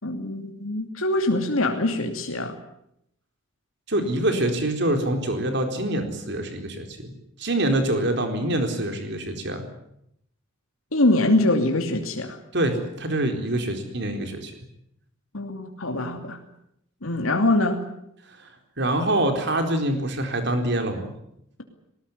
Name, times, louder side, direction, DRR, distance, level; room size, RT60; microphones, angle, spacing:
voice 1, 0.0-2.6 10.9-12.4 15.3-16.4 17.0-17.8, left 2 dB, 85° left, 3 dB, 2.8 m, -23 dB
voice 2, 3.9-7.1 7.4-9.6 12.5-14.5 18.3-18.5 18.8-21.1, right 1 dB, 55° right, 5 dB, 4.2 m, -25 dB
20.0 x 19.0 x 9.9 m, 0.76 s
head